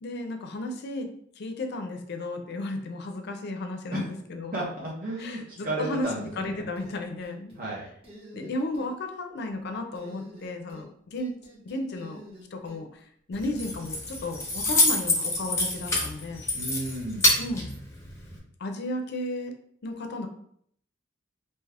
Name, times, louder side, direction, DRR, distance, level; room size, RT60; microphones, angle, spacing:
voice 1, 0.0-4.6 5.2-7.5 8.3-11.4 11.6-12.2 12.5-13.0 13.3-16.4 17.4-17.7 18.6-20.3, left 2 dB, 60° left, 5 dB, 0.4 m, -34 dB
voice 2, 4.5-6.6 7.6-7.9 16.5-17.3, right 1 dB, 50° right, -5 dB, 0.6 m, -33 dB
sound 1, 6.0-6.9 7.2-7.7 8.0-8.9 10.0-10.9 11.2-12.8, left 1 dB, 30° right, 1.0 m, -48 dB
Keys jangling, 13.3-18.4, left 2 dB, 15° left, 0.7 m, -27 dB
2.7 x 2.3 x 3.3 m, 0.66 s
head